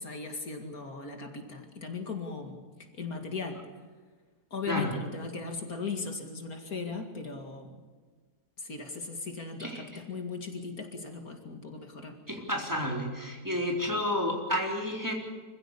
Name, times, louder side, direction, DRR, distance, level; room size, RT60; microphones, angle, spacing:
voice 1, 0.0-2.6 2.9-3.6 4.5-7.8 8.6-12.1, left 4 dB, 60° left, 4 dB, 2.6 m, -38 dB
voice 2, 12.3-15.1, equal, 10° right, 0 dB, 4.1 m, -31 dB
26.5 x 15.5 x 8.5 m, 1.4 s
omnidirectional pair, 1.7 m